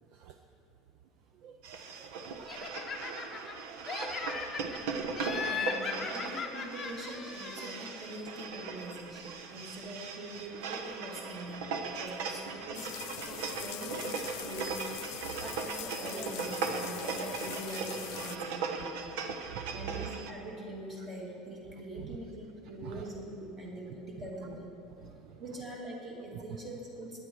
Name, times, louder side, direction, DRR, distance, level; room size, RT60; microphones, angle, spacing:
voice 1, 1.4-2.5 2.9-3.9 4.4-4.5 5.3-5.5 6.1-6.2 13.2-13.6 15.3-15.5 19.5-19.8 22.0-22.1 22.8-23.0 25.0-25.4 26.3-26.4, right 10 dB, 45° right, 6 dB, 0.6 m, -49 dB
sound 1, 1.6-20.3, right 5 dB, 75° right, 1.1 m, -38 dB
Laughter, 2.5-3.6 3.9-4.8 5.2-7.9, left 6 dB, 20° left, 0.9 m, -38 dB
voice 2, 5.4-14.8 15.4-19.1 19.7-24.7 25.4-27.2, right 1 dB, 25° right, -3 dB, 2.6 m, -43 dB
sound 2, 12.7-18.4, left 15 dB, 55° left, 0.5 m, -43 dB
18.5 x 10.0 x 4.7 m, 2.8 s
cardioid pair, 175°, 0 cm